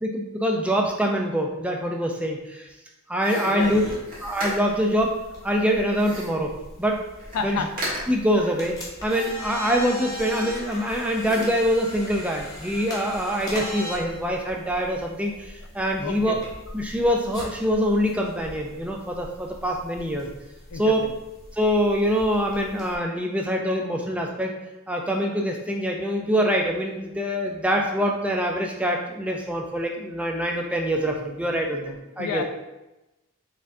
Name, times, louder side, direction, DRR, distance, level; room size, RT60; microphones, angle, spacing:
voice 1, 0.0-2.7 3.1-3.8 4.2-5.2 5.4-7.0 7.4-7.7 8.1-16.4 16.7-20.3 20.7-21.0 21.5-24.5 24.9-32.4, equal, 5° right, 1 dB, 0.3 m, -24 dB
sound 1, 3.2-4.9 5.9-6.5 6.9-7.0 7.2-7.5 7.8-8.3 9.0-9.6 10.0-10.8 11.2-11.7, equal, 40° right, 1.2 m, -36 dB
voice 2, 3.5-4.0 7.3-7.7 16.0-16.4 20.7-21.1 32.2-32.4, left 5 dB, 85° left, 7 dB, 0.3 m, -30 dB
sound 2, 3.6-23.0, equal, 15° left, 0.7 m, -40 dB
4.3 x 3.5 x 2.6 m, 1.0 s
head